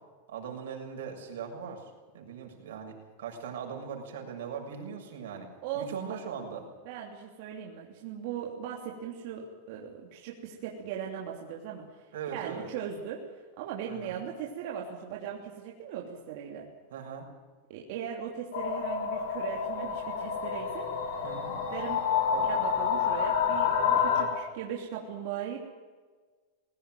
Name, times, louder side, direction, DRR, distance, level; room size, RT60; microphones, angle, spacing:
voice 1, 0.3-5.5 5.7-6.6 12.1-12.7 13.9-14.2 16.9-17.3 21.2-21.5 22.3-22.5, right 7 dB, 85° right, 2 dB, 6.8 m, -40 dB
voice 2, 5.6-6.2 6.8-13.2 13.6-16.7 17.7-21.2 21.7-22.0 22.4-25.6, right 8 dB, 50° right, -1 dB, 3.1 m, -39 dB
sound 1, 18.5-24.2, left 7 dB, 80° left, 7.3 m, -28 dB
21.0 x 17.0 x 9.2 m, 1.4 s
supercardioid pair, 170°, 0 cm